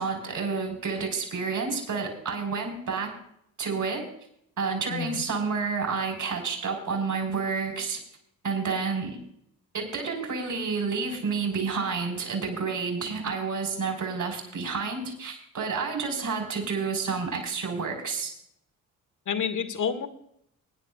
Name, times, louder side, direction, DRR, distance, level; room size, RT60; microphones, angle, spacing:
voice 1, 0.0-3.1 3.6-4.0 4.6-8.0 8.4-9.2 9.7-18.3, right 5 dB, 50° right, 2 dB, 4.6 m, -30 dB
voice 2, 4.9-5.2 19.3-20.1, left 7 dB, 50° left, 7 dB, 1.9 m, -29 dB
24.0 x 10.5 x 2.4 m, 0.71 s
hypercardioid pair, 55°, 40 cm